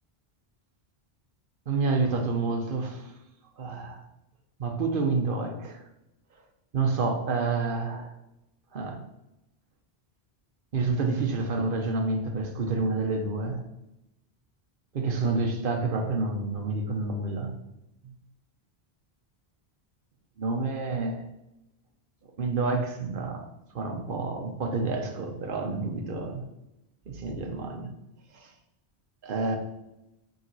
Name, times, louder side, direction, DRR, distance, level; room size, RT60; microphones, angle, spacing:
voice 1, 1.7-3.0 3.6-4.0 4.6-5.8 6.7-8.1 8.7-9.0 10.7-13.6 14.9-17.5 18.0-18.1 20.4-21.2 22.4-23.5 23.7-26.5 27.1-27.9 29.2-29.6, right 3 dB, 55° right, 3 dB, 1.0 m, -28 dB
5.2 x 3.9 x 4.6 m, 0.91 s
omnidirectional pair, 1.1 m